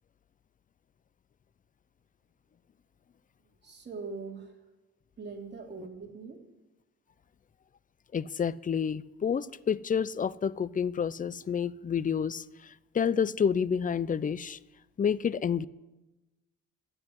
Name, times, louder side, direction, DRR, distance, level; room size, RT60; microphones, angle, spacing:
voice 1, 3.4-4.6 5.2-6.4, right 4 dB, 35° right, 3.1 m, -42 dB
voice 2, 8.1-14.6 15.0-15.7, left 7 dB, 25° left, 0.5 m, -29 dB
12.5 x 9.9 x 9.8 m
cardioid pair, 90°, 30 cm